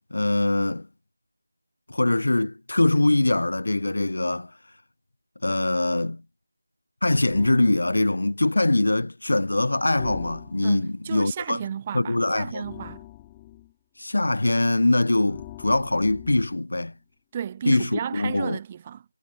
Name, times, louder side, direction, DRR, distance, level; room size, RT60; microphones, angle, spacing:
voice 1, 0.1-0.9 1.9-4.5 5.4-6.2 7.0-11.6 11.9-12.6 14.0-16.9 17.7-18.6, left 2 dB, 65° left, 3.8 m, -23 dB
sound 1, 7.3-7.7 10.0-10.9 12.6-13.7 15.3-16.7, left 16 dB, 10° left, 7.9 m, -43 dB
voice 2, 10.6-13.0 17.3-19.0, right 9 dB, 15° right, 2.9 m, -33 dB
figure-of-eight pair, 170°, 0 cm